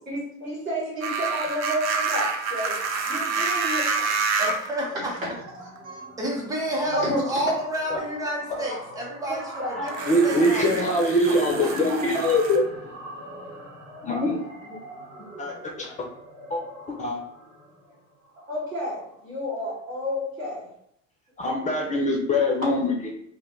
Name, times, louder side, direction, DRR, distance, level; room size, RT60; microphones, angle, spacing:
voice 1, 0.1-2.7 3.1-4.1 4.4-5.2 5.6-6.0 6.9-7.2 9.6-9.7 12.0-12.1 15.6-15.7 18.5-20.7, equal, 85° right, -7 dB, 1.1 m, -31 dB
sound 1, 1.0-4.7 5.8-5.9 9.9-12.6, right 5 dB, 45° right, 0.5 m, -28 dB
sound 2, 4.3-19.2, right 2 dB, 65° right, 1.0 m, -42 dB
voice 2, 4.4-5.1 6.2-10.9 11.3-12.0, right 1 dB, 10° right, -3 dB, 0.7 m, -30 dB
voice 3, 9.8-12.7 14.0-14.4 14.7-14.8 15.4-15.9 16.5-16.6 16.9-17.2 21.4-23.1, left 1 dB, 20° left, 0 dB, 0.3 m, -23 dB
2.2 x 2.0 x 2.9 m, 0.74 s
figure-of-eight pair, 60°, 39 cm